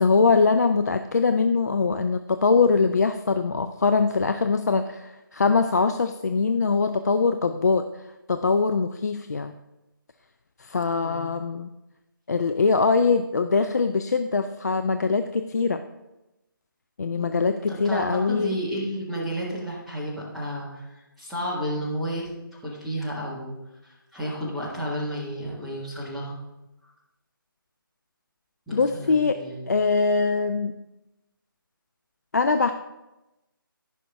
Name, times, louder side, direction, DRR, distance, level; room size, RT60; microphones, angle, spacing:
voice 1, 0.0-8.0 8.3-9.5 10.6-11.7 12.3-15.8 17.0-18.6 28.7-30.7 32.3-32.7, left 4 dB, 50° left, 8 dB, 0.4 m, -22 dB
voice 2, 11.0-11.3 17.2-20.8 21.2-23.5 23.8-26.4 28.7-29.7, equal, ahead, -9 dB, 1.6 m, -32 dB
14.5 x 5.7 x 3.5 m, 0.99 s
figure-of-eight pair, 150°, 12 cm